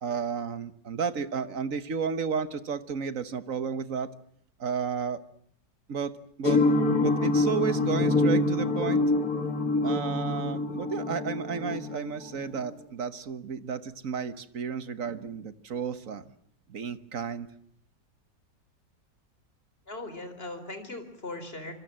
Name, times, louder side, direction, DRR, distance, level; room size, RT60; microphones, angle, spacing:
voice 1, 0.0-4.1 4.6-5.2 5.9-6.6 7.0-9.0 9.8-16.3 16.7-17.5, right 6 dB, 50° right, 13 dB, 1.5 m, -32 dB
sound 1, 6.4-12.7, left 2 dB, 50° left, 2.7 m, -26 dB
voice 2, 19.9-21.7, left 2 dB, 30° left, 9 dB, 4.1 m, -39 dB
26.0 x 24.0 x 7.5 m, 0.62 s
omnidirectional pair, 2.0 m